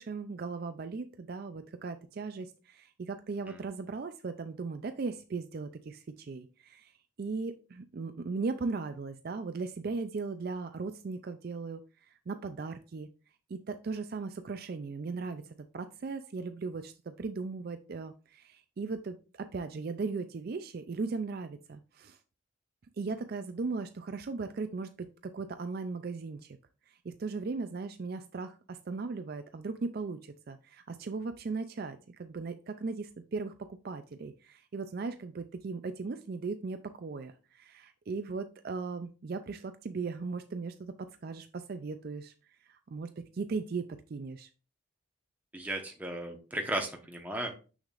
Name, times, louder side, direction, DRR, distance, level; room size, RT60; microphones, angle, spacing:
voice 1, 0.0-6.9 7.2-11.8 12.3-13.1 13.5-15.4 15.7-22.2 23.0-25.1 25.3-26.6 26.9-33.5 33.8-42.3 42.7-44.5, right 4 dB, 45° right, 9 dB, 0.4 m, -37 dB
voice 2, 45.5-47.5, right 1 dB, 10° right, 2 dB, 1.0 m, -35 dB
6.4 x 6.3 x 2.5 m, 0.34 s
head